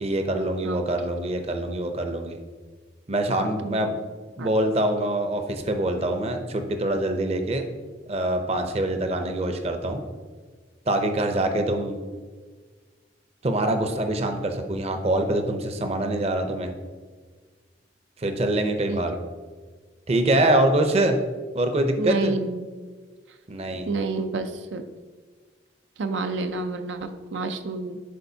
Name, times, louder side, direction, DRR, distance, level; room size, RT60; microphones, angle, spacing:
voice 1, 0.0-2.4 3.1-3.9 4.4-7.7 8.1-10.0 10.9-12.0 13.4-16.7 18.2-19.1 20.1-21.2 21.5-22.3 23.5-23.9, right 1 dB, 35° right, 5 dB, 0.6 m, -24 dB
voice 2, 3.3-4.0 4.4-4.5 18.9-19.0 22.0-22.7 23.9-24.8 26.0-28.0, right 3 dB, 90° right, 7 dB, 0.5 m, -29 dB
11.0 x 4.3 x 2.7 m, 1.5 s
head